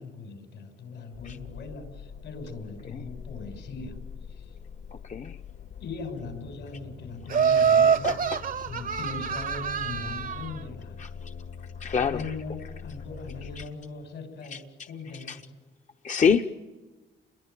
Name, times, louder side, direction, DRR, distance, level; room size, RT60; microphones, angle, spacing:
voice 1, 0.0-4.0 4.3-4.6 5.8-8.2 8.6-11.0 11.9-15.4, left 4 dB, 75° left, 5 dB, 6.4 m, -40 dB
sound 1, 1.1-13.7, left 6 dB, 60° left, 1.7 m, -43 dB
voice 2, 4.9-5.4 8.0-8.4 11.0-11.1 11.8-12.2 13.6-13.7 14.5-14.6 15.3-15.4 16.0-16.5, left 6 dB, 40° left, 6 dB, 0.9 m, -26 dB
Laughter, 7.3-10.5, right 7 dB, 45° right, 0.8 m, -24 dB
28.0 x 22.0 x 9.3 m, 1.2 s
cardioid pair, 90°, 20 cm